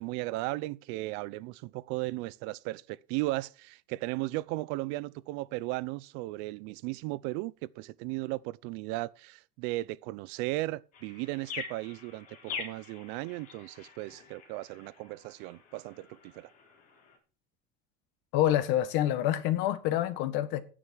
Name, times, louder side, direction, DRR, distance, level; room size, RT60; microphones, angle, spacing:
voice 1, 0.0-16.5, right 20 dB, 65° right, 0.5 m, -36 dB
sound 1, 10.9-17.2, left 6 dB, 40° left, 4.0 m, -45 dB
voice 2, 18.3-20.6, left 12 dB, 60° left, 1.5 m, -27 dB
12.5 x 10.0 x 4.6 m
cardioid pair, 175°, 20 cm